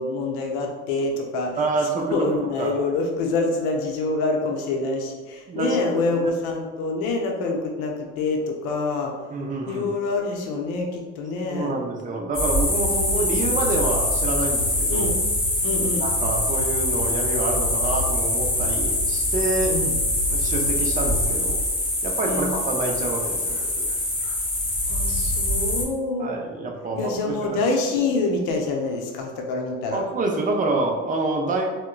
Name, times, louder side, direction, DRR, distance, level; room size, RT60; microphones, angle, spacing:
voice 1, 0.0-1.5 2.1-9.1 9.7-11.7 12.8-13.2 14.9-15.1 15.6-16.1 19.7-19.9 22.3-22.5 24.9-26.4 27.0-30.0, left 3 dB, 65° left, 1 dB, 0.7 m, -26 dB
voice 2, 1.6-2.8 5.5-6.2 9.3-9.9 11.5-15.1 16.0-19.7 20.3-21.6 22.0-24.0 26.2-27.6 29.9-31.7, right 2 dB, 20° right, 1 dB, 0.5 m, -27 dB
sound 1, 12.3-25.8, left 1 dB, 20° left, 1.0 m, -24 dB
3.6 x 2.2 x 2.2 m, 1.4 s
hypercardioid pair, 75°, 39 cm